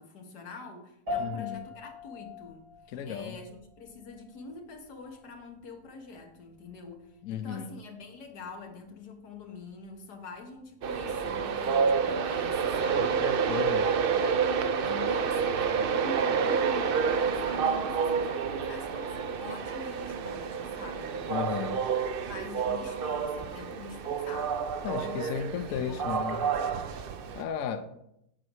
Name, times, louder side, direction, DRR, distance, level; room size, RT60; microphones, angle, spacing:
voice 1, 0.0-2.6 3.0-13.3 14.8-21.7 22.2-24.6 25.0-26.7, left 4 dB, 85° left, 4 dB, 1.9 m, -45 dB
sound 1, 1.1-10.6, left 3 dB, 85° right, 4.5 m, -43 dB
voice 2, 1.2-1.6 2.9-3.4 7.2-7.7 13.0-13.9 21.3-21.8 24.8-26.5 26.9-27.0 27.3-28.0, left 7 dB, 65° left, 9 dB, 1.0 m, -35 dB
Train, 10.8-27.4, right 6 dB, 65° right, 0.5 m, -29 dB
8.7 x 5.3 x 6.2 m, 0.79 s
omnidirectional pair, 1.7 m